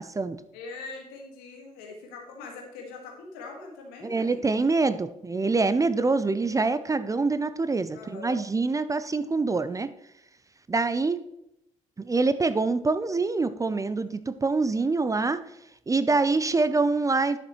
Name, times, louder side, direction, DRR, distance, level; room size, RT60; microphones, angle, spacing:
voice 1, 0.0-0.4 4.0-9.9 10.7-11.2 12.0-15.4 15.9-17.4, right 3 dB, 20° right, 13 dB, 0.5 m, -25 dB
voice 2, 0.5-4.6 7.9-8.4, left 3 dB, 70° left, 1 dB, 1.8 m, -42 dB
11.5 x 6.7 x 3.1 m, 0.83 s
figure-of-eight pair, 45°, 16 cm